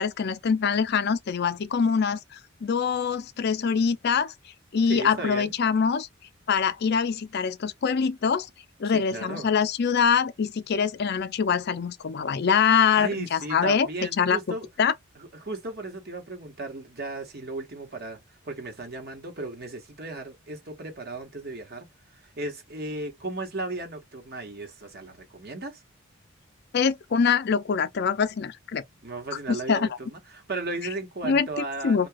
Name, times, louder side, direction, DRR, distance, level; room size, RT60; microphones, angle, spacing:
voice 1, 0.0-4.3 4.7-6.1 6.5-8.5 8.8-13.9 14.2-14.4 14.8-14.9 26.7-28.8 29.5-29.9 31.2-32.1, left 6 dB, 50° left, 0.4 m, -24 dB
voice 2, 4.9-5.5 8.9-9.5 13.0-14.7 15.2-18.2 18.4-21.9 22.4-25.8 29.0-32.1, right 2 dB, 50° right, 1.0 m, -35 dB
2.8 x 2.3 x 3.4 m
head